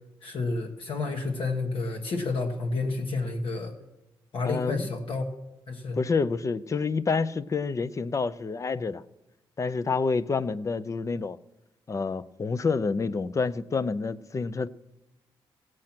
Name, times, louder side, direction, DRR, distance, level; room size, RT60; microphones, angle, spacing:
voice 1, 0.2-3.7 4.3-5.3 5.7-6.0, left 3 dB, 70° left, 1.3 m, -30 dB
voice 2, 4.5-4.9 6.0-9.0 9.6-11.4 11.9-14.7, left 4 dB, 35° left, 0.5 m, -28 dB
16.5 x 7.7 x 5.9 m
cardioid pair, 90°, 9 cm